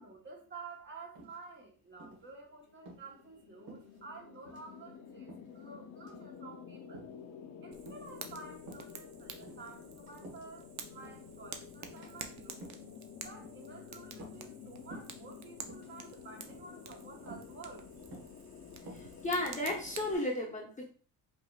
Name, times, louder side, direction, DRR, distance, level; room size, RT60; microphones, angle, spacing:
voice 1, 0.0-7.0 7.6-12.7 13.2-18.1, right 3 dB, 35° right, 0 dB, 1.2 m, -51 dB
sound 1, 1.1-1.6 2.0-2.3 2.7-3.0 3.7-4.2 4.4-4.7 5.3-5.6 6.0-6.3 6.9-7.2 7.9-8.2 8.6-8.9 9.3-10.6 11.0-11.3 11.8-12.1 12.5-12.9 13.4-13.7 14.1-14.6 14.9-15.2 15.6-15.9 16.5-16.8 17.3-17.5 18.1-18.4 18.8-19.9, right 1 dB, 75° right, 1.6 m, -51 dB
sound 2, 2.4-20.2, left 7 dB, 55° left, 0.6 m, -51 dB
Fire, 7.7-20.1, right 7 dB, 50° right, 0.6 m, -50 dB
voice 2, 18.9-20.9, left 1 dB, 20° left, 0 dB, 0.8 m, -34 dB
5.1 x 3.2 x 2.3 m, 0.38 s
cardioid pair, 150°, 35 cm